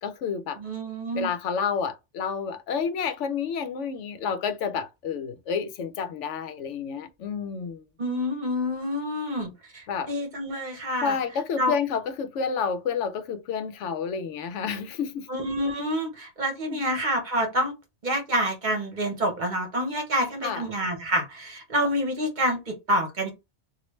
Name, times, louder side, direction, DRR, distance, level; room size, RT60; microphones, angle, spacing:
voice 1, 0.0-0.6 1.1-7.8 9.9-10.1 11.0-15.3 16.7-16.8 20.4-20.6, left 6 dB, 90° left, 0.9 m, -30 dB
voice 2, 0.6-1.3 8.0-11.1 11.6-11.7 15.3-17.7 18.0-23.3, equal, 45° right, 1.0 m, -27 dB
3.1 x 2.5 x 3.0 m
omnidirectional pair, 1.2 m